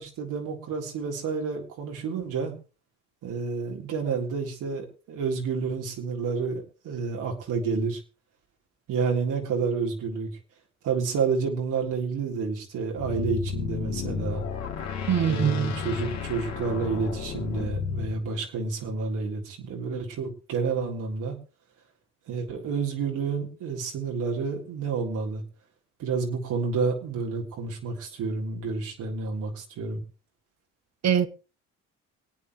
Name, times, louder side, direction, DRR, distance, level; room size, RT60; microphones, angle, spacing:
voice 1, 0.0-2.5 3.2-8.0 8.9-10.3 10.8-14.4 15.2-21.4 22.3-25.4 26.0-30.0, right 5 dB, 75° right, 3.7 m, -29 dB
sound 1, 12.9-18.2, left 6 dB, 55° left, 2.9 m, -32 dB
voice 2, 15.1-15.7 31.0-31.3, right 9 dB, 55° right, 1.3 m, -23 dB
26.0 x 9.1 x 3.2 m
cardioid pair, 85°, 32 cm